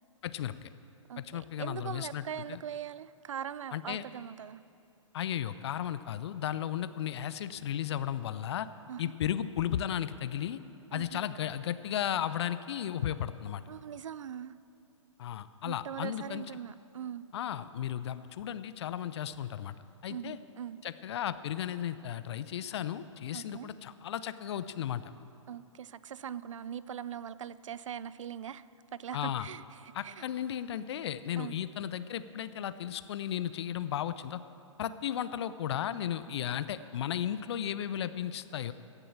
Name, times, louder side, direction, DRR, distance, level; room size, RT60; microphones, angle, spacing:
voice 1, 0.2-0.7 1.2-2.6 3.7-4.0 5.1-8.7 9.0-10.6 10.9-13.6 15.2-16.4 17.3-19.8 20.0-20.4 20.8-25.0 29.1-29.5 29.9-34.4 34.8-38.7, left 10 dB, 55° left, 14 dB, 0.6 m, -35 dB
voice 2, 1.1-4.6 8.9-9.1 10.9-11.2 13.7-14.5 15.6-17.2 20.1-20.8 23.3-23.7 25.5-28.6 28.9-30.2 31.4-31.6, right 9 dB, 70° right, 17 dB, 0.5 m, -41 dB
16.5 x 6.9 x 7.1 m, 2.8 s
hypercardioid pair, 125°, 17 cm